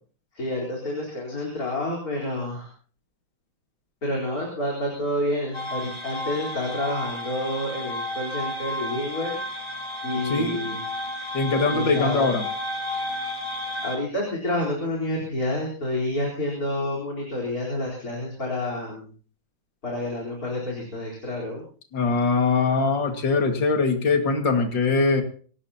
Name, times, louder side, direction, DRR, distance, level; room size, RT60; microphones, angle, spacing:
voice 1, 0.3-2.7 4.0-9.4 10.0-10.8 11.5-12.3 13.8-19.1 19.8-21.6, left 1 dB, 50° left, -2 dB, 4.7 m, -29 dB
sound 1, 5.5-14.0, left 1 dB, 20° left, 3.0 m, -32 dB
voice 2, 10.3-10.6 11.3-12.4 21.9-25.2, left 4 dB, 70° left, 5 dB, 2.8 m, -22 dB
25.5 x 17.5 x 2.9 m, 0.42 s
omnidirectional pair, 2.1 m